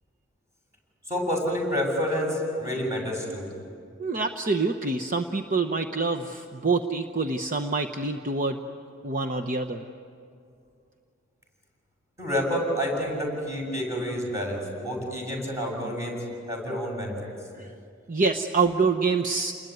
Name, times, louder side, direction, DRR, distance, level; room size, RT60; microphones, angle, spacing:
voice 1, 1.1-3.5 12.2-16.2 16.5-17.3, equal, 15° right, -2 dB, 7.1 m, -28 dB
voice 2, 4.0-8.6 9.0-9.8 17.5-17.7 18.1-19.5, right 4 dB, 45° right, 6 dB, 0.9 m, -26 dB
29.5 x 21.0 x 9.4 m, 2.4 s
head